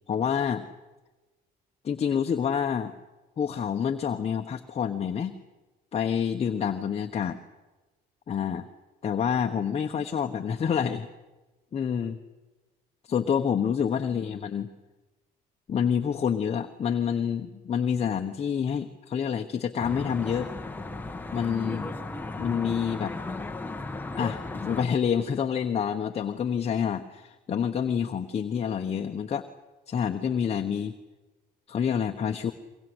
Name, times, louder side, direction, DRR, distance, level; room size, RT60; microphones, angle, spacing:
voice 1, 0.1-0.7 1.8-2.9 3.4-5.3 5.9-7.4 8.3-8.7 9.0-11.1 11.7-12.2 13.1-14.7 15.7-20.5 21.3-21.9 22.4-23.1 24.2-29.5 29.9-30.9 31.7-32.5, left 7 dB, 40° left, 4 dB, 1.2 m, -27 dB
Traffic noise roadway noise, 19.8-24.8, left 2 dB, 10° left, 1.3 m, -35 dB
23.0 x 23.0 x 8.1 m, 1.2 s
cardioid pair, 110°, 17 cm